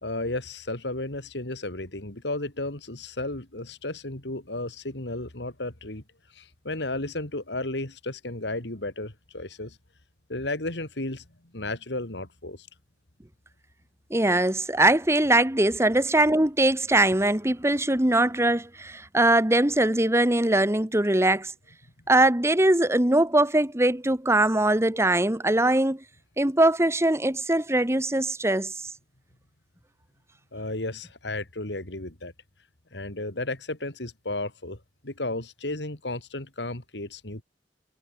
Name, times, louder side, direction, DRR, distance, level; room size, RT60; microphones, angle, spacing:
voice 1, 0.0-6.0 6.3-9.8 10.3-11.2 11.5-12.7 30.5-32.3 32.9-34.8 35.0-37.4, left 2 dB, 75° left, 3.2 m, -33 dB
voice 2, 14.1-21.5 22.1-26.0 26.4-28.7, right 1 dB, 15° right, 1.5 m, -22 dB
head